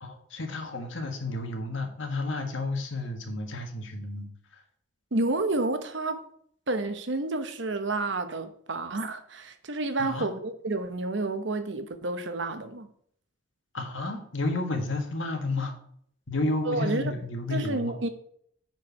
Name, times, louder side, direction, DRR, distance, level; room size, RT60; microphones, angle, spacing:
voice 1, 0.0-4.6 10.0-10.3 13.7-15.8 16.3-17.9, left 2 dB, 80° left, 1.7 m, -31 dB
voice 2, 5.1-6.2 6.7-12.9 16.6-17.1 17.5-18.1, right 2 dB, 70° right, 0.9 m, -30 dB
9.1 x 4.6 x 5.8 m
head